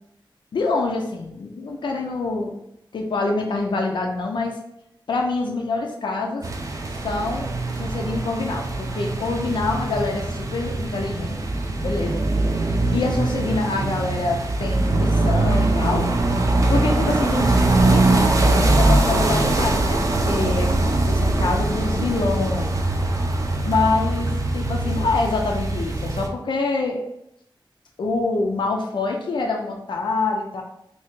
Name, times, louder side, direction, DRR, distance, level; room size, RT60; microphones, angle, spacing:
voice 1, 0.5-2.6 2.9-4.6 5.1-6.4 7.0-11.4 11.7-12.2 12.9-16.1 16.7-22.7 23.6-27.0 28.0-30.6, left 3 dB, 65° left, 1 dB, 0.5 m, -26 dB
sound 1, 6.4-26.3, right 2 dB, 40° right, 0.4 m, -22 dB
2.8 x 2.8 x 3.6 m, 0.78 s
wide cardioid pair, 135°, 9 cm